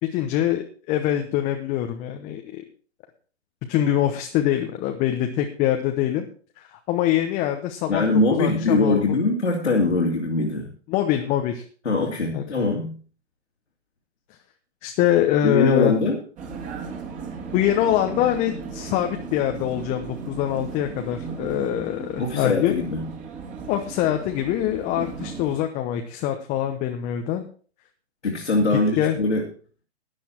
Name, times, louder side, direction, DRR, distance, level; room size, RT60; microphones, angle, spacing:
voice 1, 0.0-2.6 3.7-6.3 6.6-9.0 10.9-11.6 12.3-12.6 14.8-15.9 17.5-22.8 23.7-27.4 29.0-29.2, left 12 dB, 20° left, 4 dB, 1.0 m, -24 dB
voice 2, 7.9-10.7 11.8-13.0 15.4-16.2 22.2-23.1 28.2-29.4, left 2 dB, 85° left, -1 dB, 3.0 m, -22 dB
Vehicle, 16.4-25.6, right 5 dB, 20° right, 2.6 m, -36 dB
12.5 x 9.8 x 4.5 m, 0.41 s
figure-of-eight pair, 130°, 34 cm